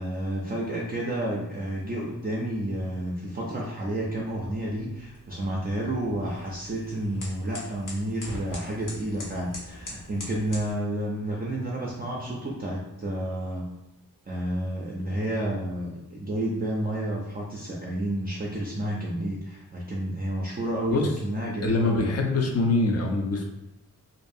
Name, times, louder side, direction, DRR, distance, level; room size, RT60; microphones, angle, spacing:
voice 1, 0.0-13.7 14.3-22.1, right 1 dB, 30° right, -4 dB, 0.4 m, -30 dB
sound 1, 3.9-10.7, left 1 dB, 65° left, 0.8 m, -42 dB
voice 2, 21.6-23.5, left 2 dB, 50° left, 2 dB, 0.5 m, -24 dB
2.6 x 2.3 x 2.6 m, 0.89 s
wide cardioid pair, 95°, 34 cm